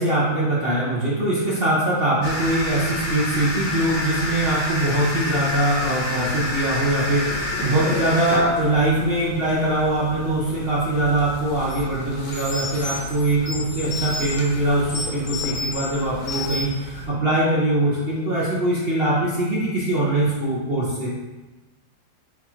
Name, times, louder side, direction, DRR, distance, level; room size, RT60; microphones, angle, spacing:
voice 1, 0.0-21.1, right 1 dB, 55° right, -8 dB, 0.6 m, -22 dB
sound 1, 2.2-17.1, left 1 dB, 65° left, 1.3 m, -30 dB
sound 2, 11.7-11.8 12.3-14.4 14.9-15.9 16.3-16.8, left 3 dB, 35° left, 0.8 m, -31 dB
4.1 x 2.4 x 4.3 m, 1.2 s
omnidirectional pair, 2.0 m